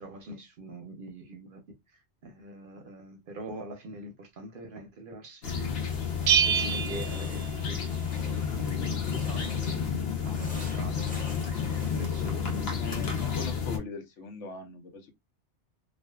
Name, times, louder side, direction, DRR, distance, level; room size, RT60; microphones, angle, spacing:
voice 1, 0.0-5.9 6.4-13.3, right 1 dB, 60° right, 0.7 m, -44 dB
sound 1, 5.4-13.8, left 7 dB, 60° left, 1.0 m, -31 dB
sound 2, 5.6-6.4 6.7-9.9 10.2-13.6, left 1 dB, 10° left, 0.4 m, -48 dB
Bell, 6.3-8.1, right 8 dB, 90° right, 0.9 m, -27 dB
voice 2, 12.8-15.1, left 5 dB, 85° left, 1.0 m, -40 dB
2.5 x 2.3 x 2.2 m
omnidirectional pair, 1.2 m